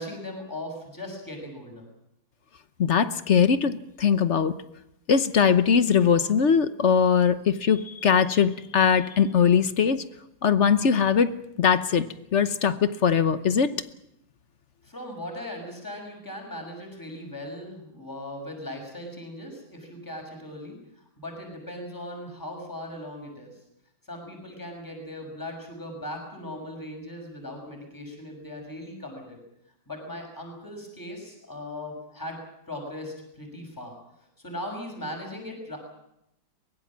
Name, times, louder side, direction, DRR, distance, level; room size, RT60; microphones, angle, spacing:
voice 1, 0.0-1.9 14.8-20.8 21.2-23.5 24.1-29.4 29.9-32.4 32.7-34.0 34.4-35.8, left 1 dB, 10° left, 2 dB, 6.1 m, -38 dB
voice 2, 2.8-4.5 5.1-10.0 10.4-13.7, left 7 dB, 45° left, 12 dB, 1.0 m, -21 dB
23.0 x 21.0 x 7.4 m, 0.79 s
omnidirectional pair, 2.0 m